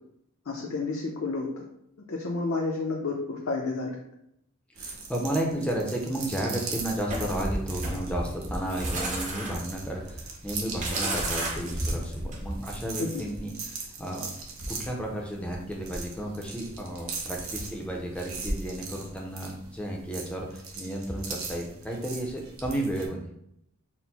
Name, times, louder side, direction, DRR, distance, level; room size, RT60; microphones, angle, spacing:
voice 1, 0.5-1.6 2.1-4.0 13.0-13.2, left 3 dB, 65° left, -1 dB, 0.6 m, -30 dB
voice 2, 4.8-14.3 14.7-23.3, right 1 dB, 5° left, 0 dB, 0.5 m, -33 dB
sound 1, 4.8-23.1, right 3 dB, 70° right, 0.8 m, -39 dB
sound 2, 7.1-12.8, right 1 dB, 35° right, 0.7 m, -32 dB
4.3 x 2.0 x 4.0 m, 0.75 s
head